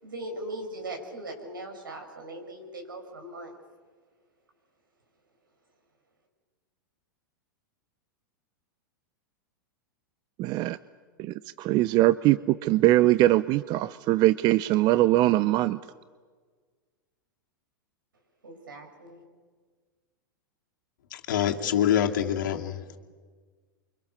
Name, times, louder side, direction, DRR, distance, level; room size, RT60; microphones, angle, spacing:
voice 1, 0.0-3.5 18.4-19.2, right 1 dB, 85° right, 3 dB, 6.8 m, -39 dB
voice 2, 10.4-10.8 11.2-15.8, right 16 dB, 40° right, 16 dB, 0.7 m, -22 dB
voice 3, 21.1-22.8, left 10 dB, 70° left, 3 dB, 2.5 m, -25 dB
29.5 x 24.5 x 6.9 m, 1.5 s
hypercardioid pair, 100°, 11 cm